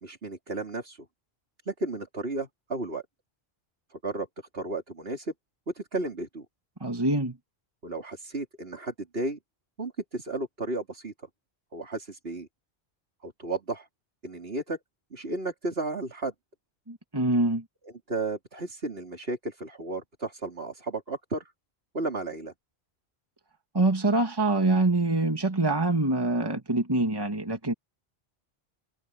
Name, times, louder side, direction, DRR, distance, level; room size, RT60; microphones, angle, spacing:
voice 1, 0.0-1.1 1.7-3.0 3.9-4.3 4.5-5.3 5.7-6.5 7.8-9.4 9.8-11.1 11.7-12.5 13.2-13.9 14.2-14.8 15.1-16.3 18.1-21.5 21.9-22.5, right 2 dB, 70° right, 4.2 m, -33 dB
voice 2, 6.8-7.4 16.9-17.6 23.7-27.7, right 2 dB, 20° right, 2.3 m, -25 dB
omnidirectional pair, 1.1 m